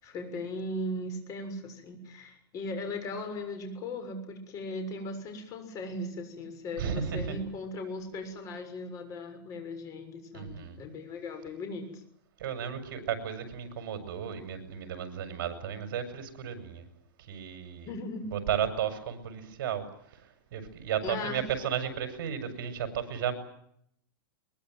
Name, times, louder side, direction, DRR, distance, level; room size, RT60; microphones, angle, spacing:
voice 1, 0.0-12.0 17.9-18.3 21.0-21.4, left 2 dB, 30° left, 7 dB, 6.7 m, -38 dB
voice 2, 6.8-7.3 10.3-10.8 12.4-16.8 17.2-17.9 18.3-23.3, right 8 dB, 60° right, 9 dB, 6.3 m, -34 dB
23.0 x 22.5 x 9.3 m, 0.71 s
supercardioid pair, 155°, 12 cm